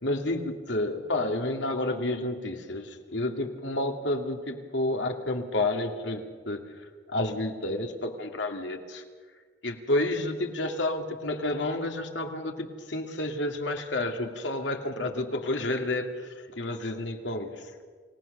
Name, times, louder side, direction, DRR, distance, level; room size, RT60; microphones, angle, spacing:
voice 1, 0.0-6.6 7.1-9.0 9.6-16.3 16.6-17.6, left 2 dB, 85° left, 4 dB, 2.5 m, -30 dB
28.5 x 18.0 x 6.7 m, 1.5 s
head